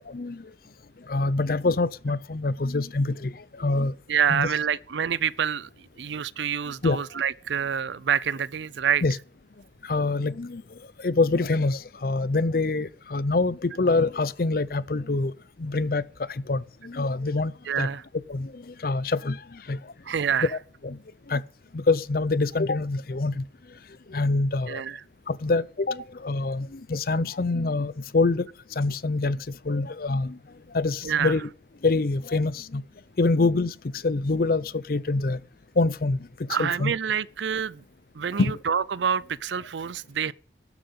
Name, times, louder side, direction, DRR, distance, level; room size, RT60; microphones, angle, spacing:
voice 1, 0.1-0.4 1.1-3.9 4.3-4.5 6.8-7.0 9.0-9.2 9.8-10.6 11.0-15.3 15.6-16.0 16.3-17.9 18.3-19.8 20.4-21.0 21.3-21.4 21.7-23.4 24.1-24.8 25.3-28.5 28.8-29.4 29.7-30.4 30.7-31.5 31.8-32.8 33.2-35.4 35.8-36.3 36.6-36.9 38.4-38.6, left 3 dB, 55° left, 0.6 m, -25 dB
voice 2, 4.1-5.7 6.0-9.0 17.7-18.0 20.1-20.5 24.7-25.0 31.0-31.4 36.5-37.8 38.1-40.3, right 7 dB, 80° right, 0.5 m, -27 dB
12.0 x 7.6 x 8.5 m
head